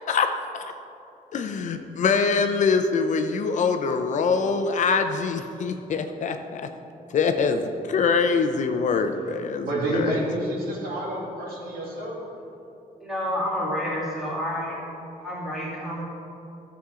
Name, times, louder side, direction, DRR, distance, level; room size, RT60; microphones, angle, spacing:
voice 1, 1.3-6.6 7.1-9.7 9.9-10.2, left 5 dB, 55° left, 6 dB, 0.6 m, -24 dB
voice 2, 9.6-12.1, right 1 dB, 80° right, -4 dB, 2.6 m, -28 dB
voice 3, 13.0-14.8 15.2-16.0, equal, ahead, -7 dB, 2.5 m, -29 dB
14.0 x 7.0 x 3.7 m, 2.8 s
wide cardioid pair, 160°, 15 cm